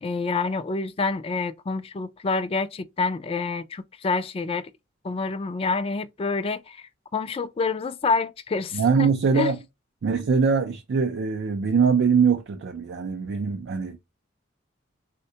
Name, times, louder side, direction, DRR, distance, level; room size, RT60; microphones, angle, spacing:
voice 1, 0.0-4.6 5.0-9.5, left 4 dB, 30° left, 0.3 m, -27 dB
voice 2, 8.7-9.6 10.0-14.0, right 5 dB, 60° right, 0.4 m, -22 dB
3.6 x 2.1 x 2.7 m
head